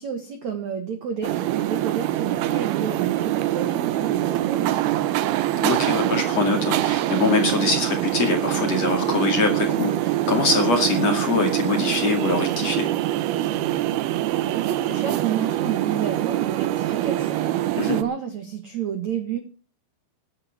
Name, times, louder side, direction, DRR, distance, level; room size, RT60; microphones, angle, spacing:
voice 1, 0.0-5.3 14.4-17.4 17.8-19.4, right 8 dB, 70° right, 8 dB, 1.7 m, -30 dB
sound 1, 1.2-18.0, right 14 dB, 90° right, 2.2 m, -24 dB
voice 2, 5.6-12.9 17.8-18.0, left 3 dB, 45° left, 4 dB, 2.5 m, -23 dB
15.0 x 11.0 x 5.9 m, 0.36 s
omnidirectional pair, 5.8 m